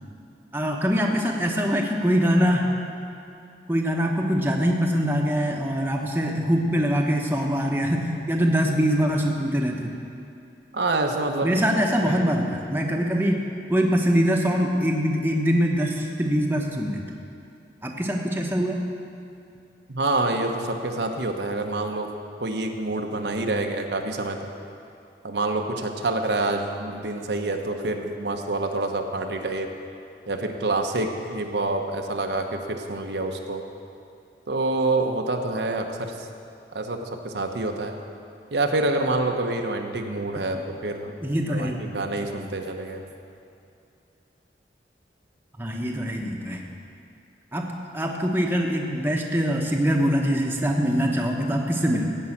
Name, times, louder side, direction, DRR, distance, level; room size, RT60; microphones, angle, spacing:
voice 1, 0.5-2.7 3.7-9.9 11.4-13.4 13.7-17.0 17.8-18.8 40.5-40.6 41.2-41.8 45.6-46.6 47.5-52.1, equal, 10° right, 0 dB, 1.0 m, -23 dB
voice 2, 10.7-11.6 12.0-12.3 19.9-22.1 22.4-24.4 25.2-29.7 30.3-33.6 34.5-36.3 36.7-38.0 38.5-41.1 41.5-43.0, right 2 dB, 80° right, 3 dB, 1.0 m, -27 dB
15.5 x 5.6 x 8.6 m, 2.6 s
head